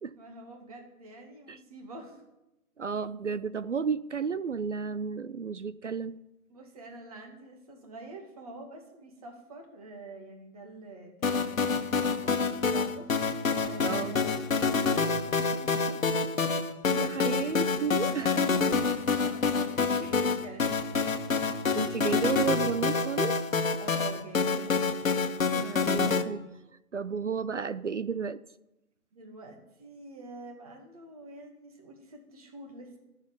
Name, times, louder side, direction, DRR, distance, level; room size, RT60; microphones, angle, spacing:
voice 1, 0.1-2.2 6.5-13.1 13.6-14.4 14.9-16.0 18.1-21.2 23.8-24.9 29.1-33.0, right 2 dB, 25° right, 4 dB, 2.1 m, -46 dB
voice 2, 2.8-6.2 13.8-14.2 16.9-18.4 20.0-20.1 21.7-23.4 25.4-26.4 26.9-28.4, right 6 dB, 55° right, 16 dB, 0.5 m, -32 dB
sound 1, 11.2-26.2, left 4 dB, 60° left, 1.5 m, -27 dB
13.0 x 7.4 x 10.0 m, 0.93 s
hypercardioid pair, 170°, 45 cm